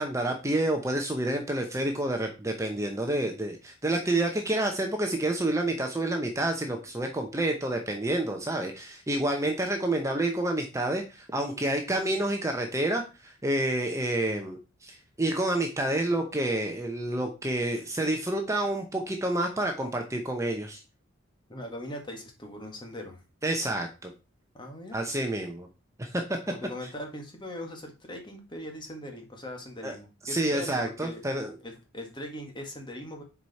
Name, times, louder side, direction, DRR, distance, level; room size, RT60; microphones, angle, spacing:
voice 1, 0.0-20.8 23.4-24.1 24.9-25.7 26.0-26.2 29.8-30.0 30.2-31.5, right 1 dB, 15° right, 3 dB, 0.9 m, -29 dB
voice 2, 21.5-23.2 24.5-25.0 26.5-31.2 31.6-33.2, left 1 dB, 25° left, 3 dB, 1.7 m, -40 dB
7.5 x 4.9 x 4.2 m, 0.29 s
head